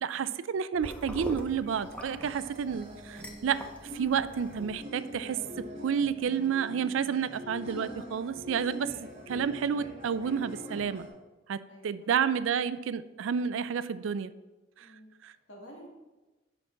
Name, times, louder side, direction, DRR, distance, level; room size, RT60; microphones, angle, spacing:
voice 1, 0.0-3.7 3.9-8.9 9.3-11.1 11.5-14.3 15.2-15.3, right 7 dB, 80° right, 15 dB, 0.4 m, -30 dB
sound 1, 0.8-4.8, left 1 dB, 5° left, 0.6 m, -44 dB
sound 2, 1.2-11.1, equal, 30° right, 1.6 m, -44 dB
voice 2, 11.7-12.1 14.8-15.1 15.5-15.9, equal, 75° left, -1 dB, 2.0 m, -51 dB
8.4 x 5.8 x 3.8 m, 1.1 s
head